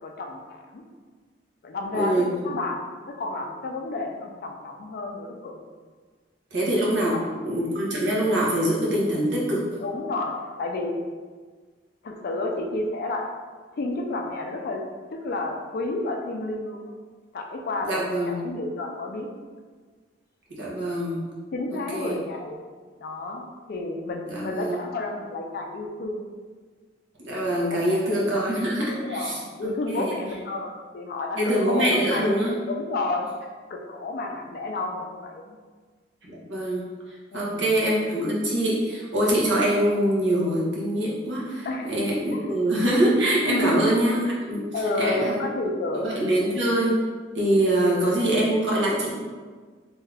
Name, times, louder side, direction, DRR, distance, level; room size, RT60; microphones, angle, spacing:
voice 1, 0.0-0.8 1.6-5.6 7.0-7.3 9.8-10.9 12.0-13.3 13.7-14.8 15.1-16.9 17.3-19.3 21.5-22.6 23.0-26.2 27.7-28.5 28.9-32.3 32.6-33.3 33.7-35.6 37.3-37.6 41.6-41.9 42.3-42.6 43.4-44.0 44.7-46.5, left 2 dB, 55° left, 2 dB, 0.4 m, -31 dB
voice 2, 1.9-2.5 6.5-7.1 7.4-9.6 17.9-18.4 20.5-21.2 21.9-22.1 24.3-24.8 27.2-30.1 31.4-32.5 36.2-36.8 37.3-44.2 44.5-44.6 45.0-45.4 45.9-47.0 47.3-49.1, right 1 dB, 85° right, -5 dB, 0.8 m, -24 dB
2.7 x 2.4 x 3.3 m, 1.5 s
head